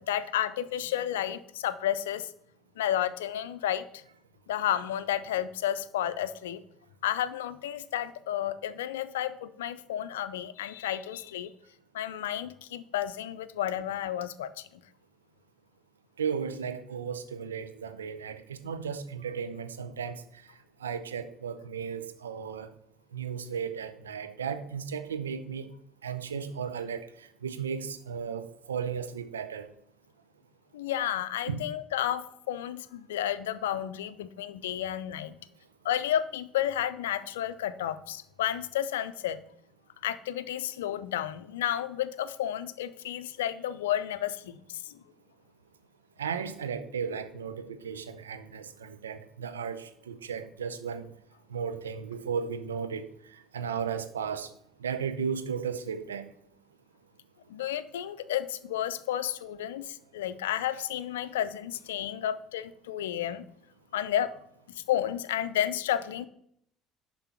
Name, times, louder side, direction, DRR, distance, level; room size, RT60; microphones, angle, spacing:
voice 1, 0.0-2.3 2.8-4.0 4.5-6.6 7.0-11.5 11.9-14.7 30.7-35.4 35.8-39.4 40.0-45.0 57.5-63.4 63.9-64.3 64.7-66.3, left 11 dB, 80° left, 14 dB, 0.5 m, -31 dB
voice 2, 16.2-20.2 20.8-22.7 23.1-25.7 26.0-27.1 27.4-29.7 31.5-31.6 46.2-51.1 51.5-53.1 53.5-54.5 54.8-56.3, right 6 dB, 85° right, 9 dB, 0.7 m, -35 dB
10.5 x 3.8 x 5.8 m, 0.71 s
hypercardioid pair, 60°, 0 cm